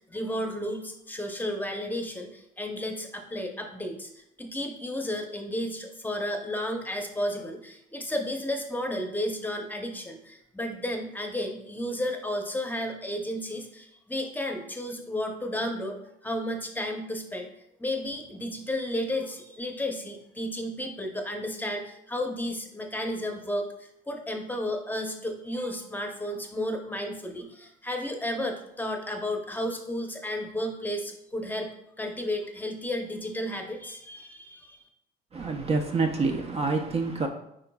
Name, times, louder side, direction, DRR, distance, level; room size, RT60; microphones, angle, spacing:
voice 1, 0.1-17.5 17.8-31.7 32.0-34.8, left 1 dB, 10° left, 4 dB, 0.8 m, -33 dB
voice 2, 35.3-37.3, right 4 dB, 30° right, 4 dB, 0.6 m, -27 dB
8.7 x 4.8 x 2.3 m, 0.78 s
cardioid pair, 110°, 19 cm